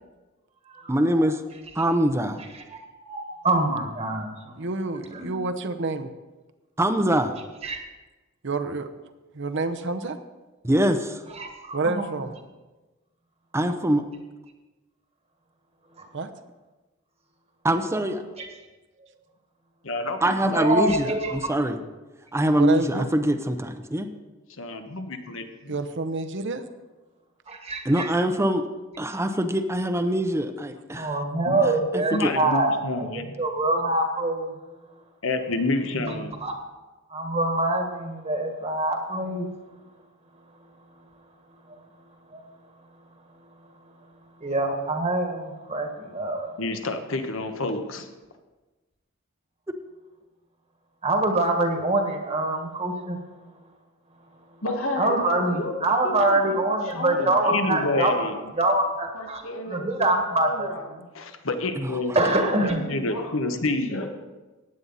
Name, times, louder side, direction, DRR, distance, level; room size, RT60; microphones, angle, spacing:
voice 1, 0.9-1.4 1.7-2.4 6.8-7.4 10.6-11.2 13.5-14.0 17.6-18.2 20.2-21.8 22.3-24.1 27.8-28.7 29.0-31.2 31.6-32.3 61.7-62.0, right 1 dB, 15° right, 8 dB, 0.7 m, -24 dB
voice 2, 3.0-4.3 5.1-5.4 7.6-7.8 11.4-12.0 20.5-21.3 27.5-28.0 30.9-32.7 33.0-33.1 33.4-34.5 36.4-36.5 37.1-39.5 42.3-42.4 44.4-46.5 51.0-53.2 55.0-58.1 58.6-59.4 59.7-60.7 62.1-62.8, right 2 dB, 30° right, 3 dB, 1.5 m, -25 dB
voice 3, 4.6-6.1 8.4-8.9 9.3-10.2 11.7-12.3 16.1-16.3 22.5-23.1 25.7-26.6, right 3 dB, 60° right, 9 dB, 0.8 m, -28 dB
voice 4, 19.8-20.8 24.6-25.7 31.5-31.6 32.1-33.3 35.2-36.3 46.6-48.1 57.2-58.5 61.1-62.1 62.6-64.0, left 2 dB, 70° left, 6 dB, 1.3 m, -29 dB
voice 5, 54.6-58.2 59.1-61.1 62.3-63.6 63.9-64.1, left 1 dB, 85° left, 3 dB, 1.8 m, -34 dB
15.0 x 9.7 x 4.1 m, 1.2 s
head